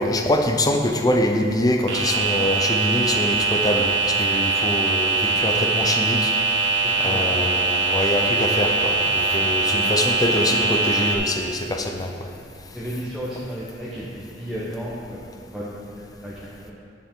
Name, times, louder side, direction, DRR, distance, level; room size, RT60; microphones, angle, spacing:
voice 1, 0.0-6.3 7.0-12.1, left 1 dB, 20° left, 3 dB, 0.6 m, -24 dB
sound 1, 1.9-11.2, right 4 dB, 75° right, 1.2 m, -22 dB
voice 2, 6.8-7.3 9.4-9.5 12.7-15.2 15.5-16.7, equal, ahead, -8 dB, 1.0 m, -33 dB
10.0 x 7.2 x 3.7 m, 2.4 s
head